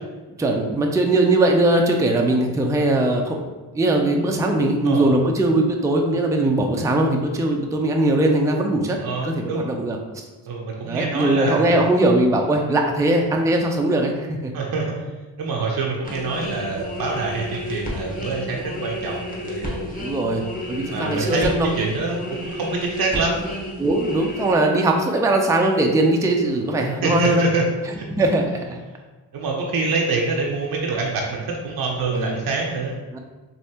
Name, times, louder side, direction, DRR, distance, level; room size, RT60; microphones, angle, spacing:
voice 1, 0.4-3.5 3.7-10.2 10.8-14.5 20.0-21.7 23.8-27.5 28.1-28.8 32.1-32.4 33.1-33.2, right 1 dB, 10° right, 2 dB, 0.4 m, -20 dB
voice 2, 9.0-9.7 10.4-11.8 14.5-14.9 15.4-19.8 20.9-21.5 21.8-23.4 27.0-27.6 27.9-28.1 29.3-33.0, right 3 dB, 55° right, -1 dB, 0.6 m, -25 dB
sound 1, 16.0-24.5, left 1 dB, 20° left, 1.1 m, -32 dB
3.3 x 2.6 x 2.8 m, 1.2 s
supercardioid pair, 40°, 44 cm